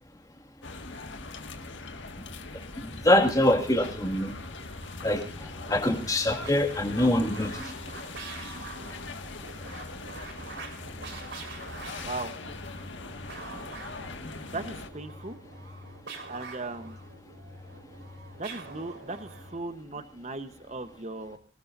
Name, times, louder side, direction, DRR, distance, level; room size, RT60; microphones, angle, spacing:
sound 1, 0.6-14.9, left 3 dB, 70° left, 1.9 m, -41 dB
voice 1, 2.8-4.3 5.0-7.7, left 1 dB, 20° left, 5 dB, 2.2 m, -24 dB
sound 2, 4.0-19.7, right 2 dB, 65° right, 4.3 m, -45 dB
voice 2, 12.0-12.3 14.4-15.4 16.3-17.0 18.4-21.4, right 2 dB, 35° right, 10 dB, 1.1 m, -37 dB
25.0 x 18.0 x 2.7 m, 0.33 s
head